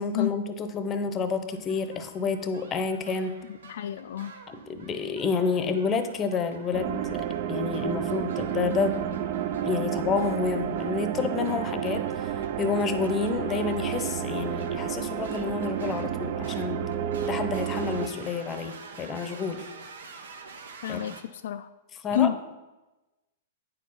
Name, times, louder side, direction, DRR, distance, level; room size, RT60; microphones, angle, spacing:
voice 1, 0.0-3.4 4.5-9.0 9.6-12.3 12.6-16.9 17.2-19.7 20.9-21.1 22.0-22.3, left 5 dB, 25° left, 9 dB, 0.7 m, -29 dB
sound 1, 1.3-21.2, right 4 dB, 85° right, 1.1 m, -48 dB
voice 2, 3.5-4.3 20.8-21.7 22.1-22.4, left 11 dB, 70° left, 9 dB, 0.3 m, -29 dB
sound 2, 6.7-18.1, right 10 dB, 50° right, 0.5 m, -31 dB
8.9 x 4.7 x 5.5 m, 1.1 s
hypercardioid pair, 140°, 0 cm